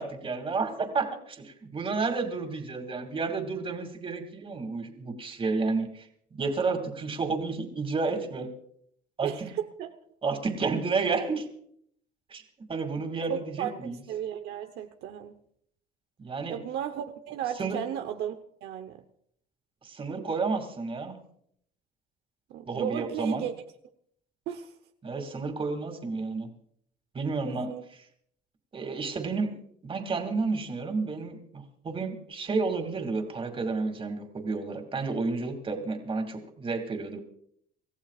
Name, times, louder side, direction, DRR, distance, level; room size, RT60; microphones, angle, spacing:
voice 1, 0.0-8.5 9.2-9.5 10.2-11.5 12.3-12.4 12.7-14.0 16.2-16.6 17.6-17.8 19.8-21.2 22.7-23.5 25.0-26.5 27.1-27.7 28.7-29.6 29.8-37.2, right 4 dB, 30° right, 5 dB, 2.6 m, -31 dB
voice 2, 9.2-9.9 13.3-15.4 16.5-19.0 22.5-23.5 24.5-24.7 27.5-27.8, right 10 dB, 80° right, 5 dB, 1.0 m, -35 dB
27.0 x 14.5 x 2.5 m, 0.69 s
cardioid pair, 110°, 17 cm